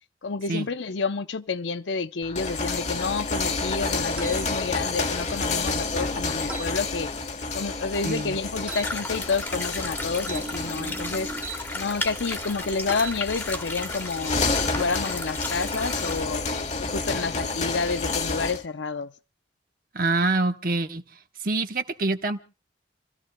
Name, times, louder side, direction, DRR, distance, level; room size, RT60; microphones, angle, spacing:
voice 1, 0.2-7.1 7.5-11.3 11.7-16.4 16.8-19.1, left 4 dB, 85° left, 0.7 m, -29 dB
sound 1, 2.2-18.6, left 3 dB, 40° left, 1.1 m, -30 dB
sound 2, 4.2-4.4 6.5-6.7 8.7-8.9 10.2-11.6 12.8-13.2, right 3 dB, 5° right, 0.8 m, -37 dB
voice 2, 8.0-8.4 19.9-21.0 21.4-22.4, right 3 dB, 50° right, 1.0 m, -25 dB
sound 3, 8.7-16.2, left 2 dB, 10° left, 1.2 m, -35 dB
30.0 x 14.5 x 2.2 m
head